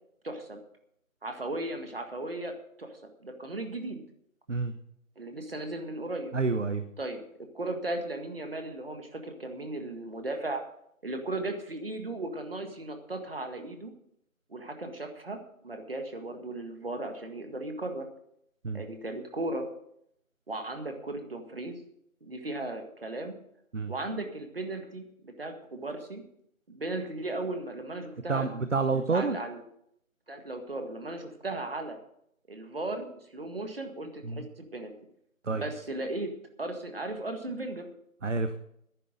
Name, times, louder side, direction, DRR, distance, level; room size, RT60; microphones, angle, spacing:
voice 1, 0.2-0.6 1.2-4.0 5.2-6.3 7.0-7.2 7.5-10.6 11.0-13.9 14.5-18.0 18.7-19.7 20.5-21.8 22.2-23.3 23.9-26.2 26.7-28.6 28.9-29.6 30.3-32.0 32.5-34.9 35.5-36.3 36.6-37.9, right 2 dB, 40° right, 5 dB, 1.8 m, -36 dB
voice 2, 6.3-6.8 18.6-18.8 23.7-23.9 28.3-29.4 34.2-34.4 35.4-35.6 38.2-38.6, right 4 dB, 60° right, 9 dB, 0.9 m, -28 dB
11.0 x 10.0 x 6.4 m, 0.73 s
figure-of-eight pair, 170°, 42 cm